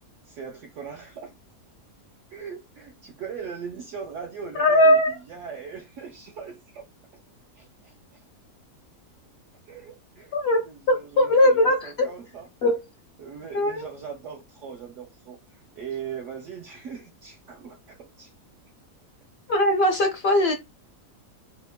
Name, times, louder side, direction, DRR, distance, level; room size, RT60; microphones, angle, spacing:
voice 1, 0.2-1.3 2.3-5.0 5.3-6.9 7.5-8.3 9.7-10.4 10.7-12.5 13.2-18.3, right 6 dB, 70° right, 0.8 m, -40 dB
voice 2, 4.5-5.1 10.3-10.6 10.9-12.1 12.6-12.8 13.5-13.9 19.5-20.5, left 1 dB, 60° left, 0.8 m, -20 dB
2.8 x 2.1 x 2.2 m
omnidirectional pair, 1.5 m